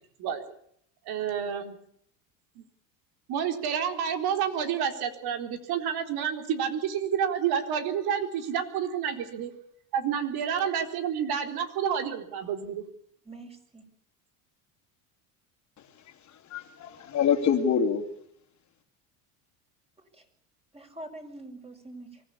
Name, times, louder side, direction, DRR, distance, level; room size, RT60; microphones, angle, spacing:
voice 1, 1.1-1.8 2.6-2.7 3.3-9.5 9.9-12.8, right 8 dB, 55° right, 6 dB, 4.0 m, -29 dB
voice 2, 13.2-13.8 20.1-20.2 20.7-22.2, right 1 dB, 15° right, 4 dB, 5.9 m, -44 dB
voice 3, 16.0-18.0, left 7 dB, 40° left, 4 dB, 3.3 m, -26 dB
24.0 x 15.5 x 8.7 m, 0.68 s
supercardioid pair, 105°, 44 cm